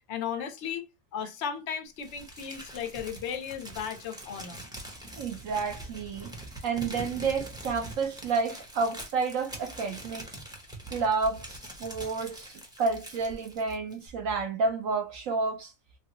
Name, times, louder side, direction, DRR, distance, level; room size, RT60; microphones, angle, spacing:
voice 1, 0.1-0.8 1.1-4.6, left 8 dB, 60° left, 0.8 m, -35 dB
Crumpling crinkling, 2.0-14.1, right 1 dB, 5° right, 0.3 m, -44 dB
voice 2, 5.2-6.3 6.6-10.3 10.9-15.7, right 4 dB, 65° right, 0.9 m, -30 dB
3.4 x 2.2 x 2.9 m
omnidirectional pair, 1.7 m